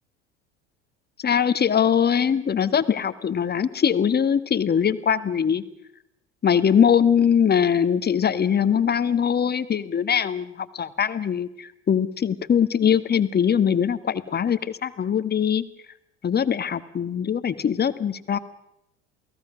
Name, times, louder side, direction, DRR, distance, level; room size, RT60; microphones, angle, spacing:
voice 1, 1.2-5.6 6.4-15.6 16.2-18.4, left 8 dB, 30° left, 13 dB, 1.5 m, -22 dB
28.5 x 18.0 x 6.2 m, 0.78 s
hypercardioid pair, 70°, 32 cm